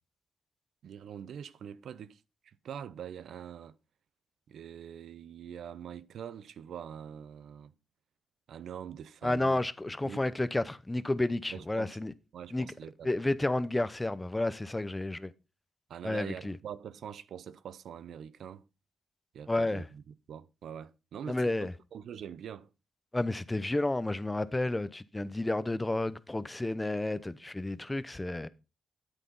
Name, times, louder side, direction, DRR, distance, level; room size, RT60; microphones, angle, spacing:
voice 1, 0.8-3.7 4.5-7.7 8.5-9.6 9.9-10.3 11.5-12.0 12.3-13.1 15.9-18.6 19.3-22.7, right 8 dB, 75° right, 0.5 m, -44 dB
voice 2, 9.2-12.1 12.5-12.7 13.0-15.3 16.0-16.6 19.5-19.8 21.3-21.7 23.1-28.5, left 2 dB, 15° left, 0.8 m, -31 dB
9.5 x 8.2 x 4.0 m
cardioid pair, 65°, 0 cm